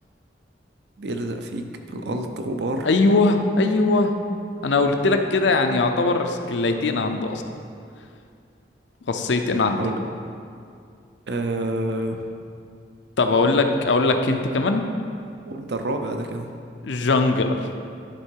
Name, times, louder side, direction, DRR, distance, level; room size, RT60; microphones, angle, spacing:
voice 1, 1.0-2.9 9.8-10.0 11.3-12.2 15.4-16.5, right 2 dB, 70° right, 5 dB, 0.6 m, -28 dB
voice 2, 2.8-4.1 4.6-7.4 9.1-9.8 13.2-14.9 16.8-17.6, left 3 dB, 85° left, 6 dB, 0.6 m, -20 dB
11.0 x 3.7 x 4.6 m, 2.4 s
head